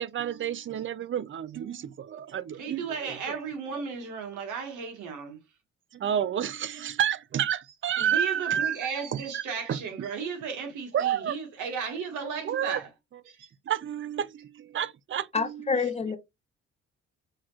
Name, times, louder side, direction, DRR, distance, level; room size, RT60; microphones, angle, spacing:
voice 1, 0.0-3.4 3.7-3.8 5.9-8.8 9.1-9.4 9.7-10.1 10.9-11.4 12.1-12.8 13.1-13.2 13.7-15.8, right 9 dB, 40° right, 0.5 m, -30 dB
voice 2, 2.6-5.4 8.0-12.9 13.3-13.5, right 6 dB, 90° right, 1.7 m, -35 dB
voice 3, 15.3-16.2, left 5 dB, 20° left, 1.0 m, -27 dB
6.6 x 2.9 x 2.4 m
cardioid pair, 90°, 30 cm